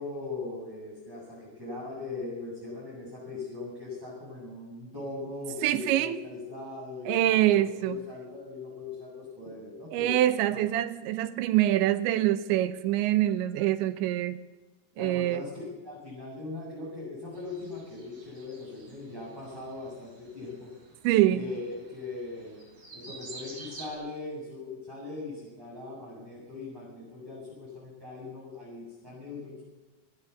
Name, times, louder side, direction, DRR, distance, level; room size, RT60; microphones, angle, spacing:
voice 1, 0.0-10.1 10.5-10.6 15.0-20.7 21.3-22.6 22.9-29.6, left 3 dB, 5° right, 7.5 m, -40 dB
voice 2, 5.6-6.2 7.1-8.0 9.9-14.4 15.0-15.4 21.0-21.4, right 13 dB, 80° right, 3.2 m, -25 dB
sound 1, 17.3-23.9, right 3 dB, 35° right, 8.5 m, -50 dB
26.0 x 19.5 x 7.2 m
omnidirectional pair, 5.4 m